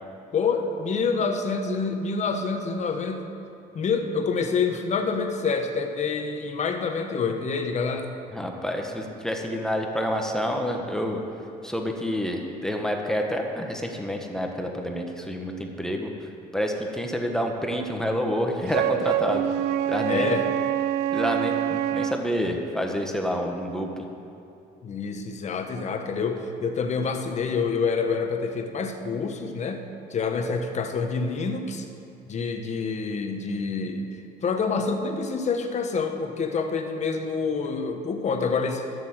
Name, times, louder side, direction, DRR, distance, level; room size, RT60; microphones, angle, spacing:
voice 1, 0.3-3.3 3.7-8.1 20.0-20.4 24.8-29.8 30.1-31.8 32.3-38.8, left 5 dB, 45° left, 5 dB, 1.2 m, -27 dB
voice 2, 8.3-11.2 11.6-16.1 16.5-19.5 19.9-20.3 21.1-23.9, equal, 5° left, 2 dB, 1.3 m, -28 dB
Wind instrument woodwind instrument, 18.7-22.2, right 11 dB, 90° right, 0.5 m, -26 dB
12.0 x 6.9 x 7.9 m, 2.8 s
cardioid pair, 110°, 17 cm